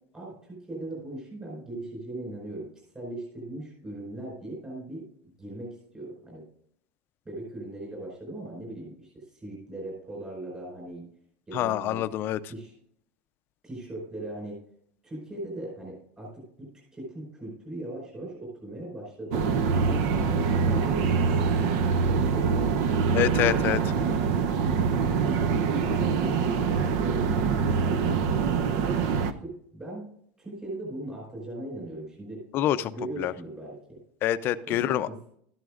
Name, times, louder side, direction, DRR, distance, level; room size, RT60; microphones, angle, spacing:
voice 1, 0.1-2.7 2.9-5.0 5.4-6.4 7.2-11.1 11.5-12.0 12.5-12.7 13.6-14.6 15.0-19.4 19.8-21.6 22.0-24.1 25.0-28.5 29.4-30.0 30.4-32.4 32.9-34.0 34.7-35.2, right 1 dB, 15° right, -4 dB, 4.9 m, -39 dB
voice 2, 11.5-12.4 23.1-23.8 32.5-32.9 33.2-33.3 34.2-35.1, left 12 dB, 35° left, 13 dB, 0.5 m, -26 dB
sound 1, 19.3-29.3, right 5 dB, 55° right, 0.7 m, -24 dB
13.0 x 11.0 x 2.5 m, 0.68 s
supercardioid pair, 160°, 6 cm